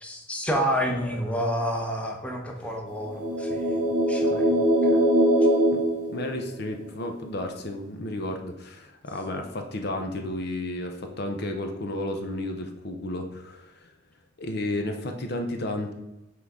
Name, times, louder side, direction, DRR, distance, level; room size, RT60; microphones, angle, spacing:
voice 1, 0.0-3.8 4.1-5.0, equal, 5° left, 1 dB, 0.9 m, -29 dB
sound 1, 3.0-6.8, right 1 dB, 10° right, 2.1 m, -22 dB
voice 2, 5.7-13.9 14.4-15.9, left 1 dB, 55° left, 4 dB, 0.7 m, -32 dB
6.0 x 3.8 x 4.8 m, 0.97 s
head